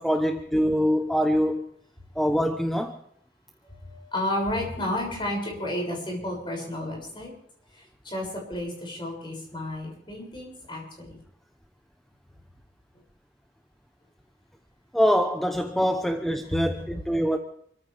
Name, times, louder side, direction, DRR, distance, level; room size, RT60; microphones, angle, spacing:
voice 1, 0.0-1.6 2.2-2.9 14.9-17.4, equal, ahead, 0.8 m, -24 dB
voice 2, 3.7-7.3 8.0-11.2 16.4-16.9, left 1 dB, 25° left, 6.6 m, -32 dB
28.5 x 14.5 x 3.5 m
head